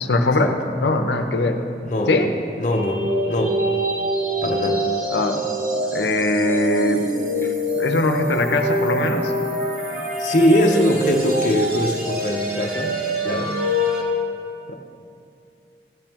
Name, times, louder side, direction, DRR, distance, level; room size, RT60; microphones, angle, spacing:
voice 1, 0.0-1.6 2.1-2.3 5.1-5.4 5.9-7.0 7.4-9.3 14.7-14.8, left 2 dB, 75° left, 6 dB, 0.7 m, -21 dB
voice 2, 2.6-3.6 4.4-4.8 10.2-13.0 13.2-13.6, equal, 45° left, 1 dB, 0.7 m, -21 dB
sound 1, 2.7-14.0, equal, 50° right, 1.4 m, -25 dB
13.5 x 8.8 x 3.0 m, 2.5 s
head